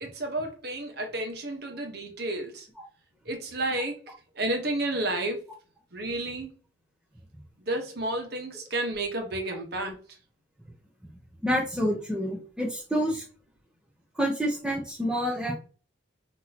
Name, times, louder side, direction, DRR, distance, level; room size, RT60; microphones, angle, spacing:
voice 1, 0.0-2.7 3.2-5.4 5.9-6.5 7.6-10.0, right 2 dB, 55° right, 1.3 m, -31 dB
voice 2, 11.4-13.2 14.1-15.5, equal, 5° right, 0.8 m, -28 dB
6.2 x 3.0 x 2.9 m
head